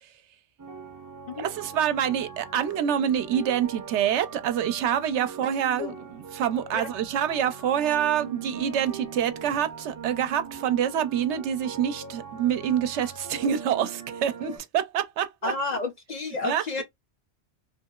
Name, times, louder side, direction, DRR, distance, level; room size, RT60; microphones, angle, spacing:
sound 1, 0.6-14.6, right 5 dB, 25° right, 0.4 m, -41 dB
voice 1, 1.4-15.5 16.4-16.8, right 9 dB, 85° right, 0.9 m, -26 dB
voice 2, 15.4-16.8, left 3 dB, 55° left, 0.5 m, -31 dB
3.1 x 2.8 x 2.3 m
omnidirectional pair, 1.1 m